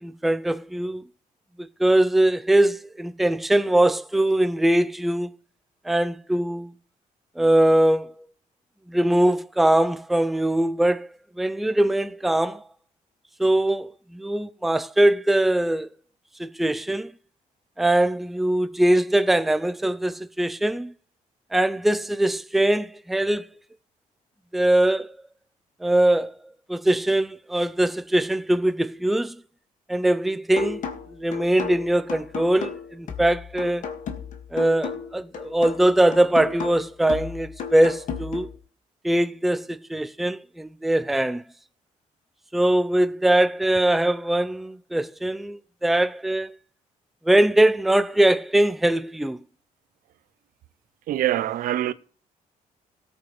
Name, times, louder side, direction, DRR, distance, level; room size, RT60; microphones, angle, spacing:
voice 1, 0.0-1.0 1.6-5.4 5.8-6.7 7.4-8.1 8.9-11.1 11.4-12.6 13.4-15.9 16.4-17.1 17.8-20.9 21.5-23.5 24.5-25.2 25.8-26.4 26.7-29.4 29.9-30.8 31.1-33.8 34.5-38.5 39.0-41.4 42.5-46.6 47.3-49.4, right 1 dB, ahead, 0.4 m, -21 dB
sound 1, 30.6-38.6, left 6 dB, 60° left, 2.0 m, -34 dB
voice 2, 51.1-51.9, right 13 dB, 80° right, 0.7 m, -24 dB
17.5 x 8.6 x 3.3 m
cardioid pair, 145°, 14 cm